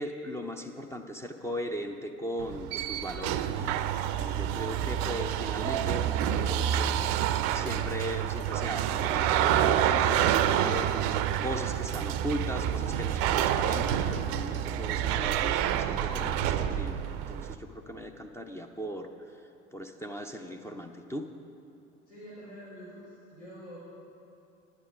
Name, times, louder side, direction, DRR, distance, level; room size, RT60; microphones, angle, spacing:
voice 1, 0.0-7.0 7.5-19.4 19.7-21.3, equal, 10° left, 3 dB, 0.5 m, -38 dB
sound 1, 2.4-17.5, right 10 dB, 50° right, 0.5 m, -28 dB
voice 2, 22.1-23.8, equal, 75° left, -8 dB, 2.9 m, -46 dB
11.0 x 9.7 x 5.0 m, 2.7 s
figure-of-eight pair, 65°, 35 cm